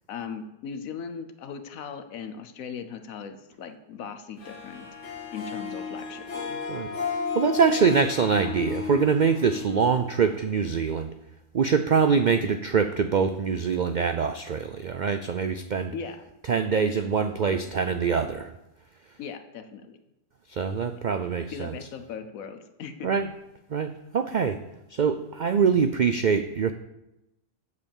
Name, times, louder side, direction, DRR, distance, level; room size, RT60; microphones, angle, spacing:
voice 1, 0.1-6.6 15.9-16.2 19.2-20.0 21.5-23.1, left 6 dB, 75° left, 8 dB, 1.2 m, -38 dB
Harp, 4.4-10.7, left 5 dB, 55° left, 2.3 m, -34 dB
voice 2, 6.7-11.1 11.5-15.9 16.5-18.5 20.5-21.7 23.0-23.3 23.7-24.6 24.9-26.7, right 6 dB, 70° right, 9 dB, 0.4 m, -24 dB
8.4 x 6.9 x 7.1 m, 0.91 s
omnidirectional pair, 1.4 m